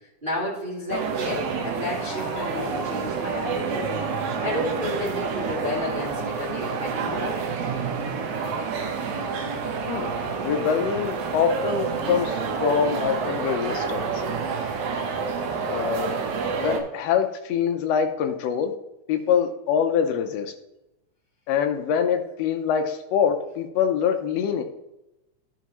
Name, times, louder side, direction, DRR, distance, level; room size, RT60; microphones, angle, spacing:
voice 1, 0.2-3.9 4.4-7.3, left 1 dB, 15° right, -7 dB, 2.6 m, -31 dB
sound 1, 0.9-16.8, right 5 dB, 75° right, 2.4 m, -28 dB
voice 2, 10.4-14.1 15.6-16.1 16.6-18.7 19.1-20.5 21.5-24.6, left 7 dB, 75° left, 5 dB, 1.5 m, -24 dB
13.0 x 5.1 x 3.0 m, 0.91 s
omnidirectional pair, 3.5 m